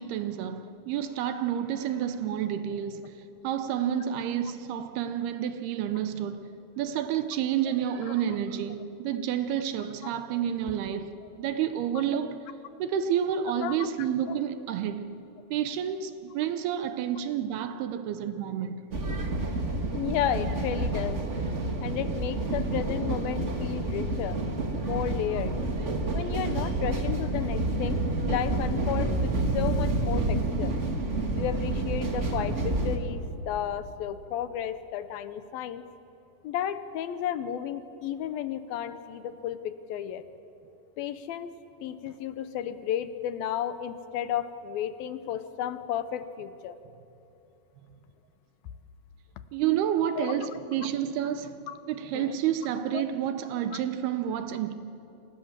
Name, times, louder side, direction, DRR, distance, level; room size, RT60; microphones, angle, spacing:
voice 1, 0.0-6.5 6.8-12.4 12.8-15.0 15.5-18.8 26.6-26.7 42.1-42.2 49.5-51.6 51.9-54.8, right 9 dB, 80° right, 2.9 m, -30 dB
sound 1, 18.9-33.0, right 2 dB, 45° right, 0.9 m, -29 dB
voice 2, 19.9-21.2 21.8-24.4 24.8-25.6 26.1-30.8 31.4-35.9 36.4-40.2 41.0-41.5 41.8-46.8 50.2-50.5 51.7-51.8 52.1-52.4 52.9-53.0 53.7-53.8, left 10 dB, 75° left, 2.5 m, -33 dB
29.5 x 24.5 x 7.4 m
omnidirectional pair, 4.6 m